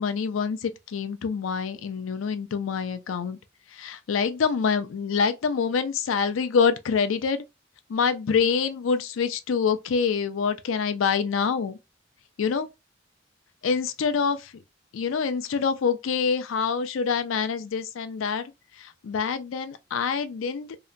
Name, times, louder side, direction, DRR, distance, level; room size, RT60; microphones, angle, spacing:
voice 1, 0.0-3.4 3.8-7.4 7.9-11.8 12.4-12.7 13.6-14.4 14.9-18.4 18.8-20.7, left 6 dB, 80° left, 0.4 m, -26 dB
2.8 x 2.1 x 2.4 m
head